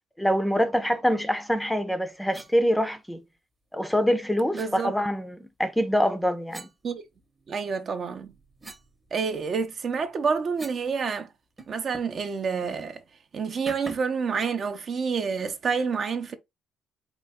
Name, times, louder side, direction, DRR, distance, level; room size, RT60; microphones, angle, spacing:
voice 1, 0.2-3.2 3.7-6.7, equal, 5° left, 0.5 m, -25 dB
sound 1, 2.3-2.5 4.5-4.7 6.5-7.5 8.0-10.9 11.2-11.3 11.6-12.2 12.6-12.8 13.7-14.2, right 3 dB, 20° right, 0.9 m, -45 dB
voice 2, 4.5-4.9 6.8-7.0 7.5-8.3 9.1-11.3 11.7-13.0 13.3-16.3, right 5 dB, 50° right, 0.6 m, -28 dB
3.9 x 2.4 x 3.4 m
cardioid pair, 95°, 0 cm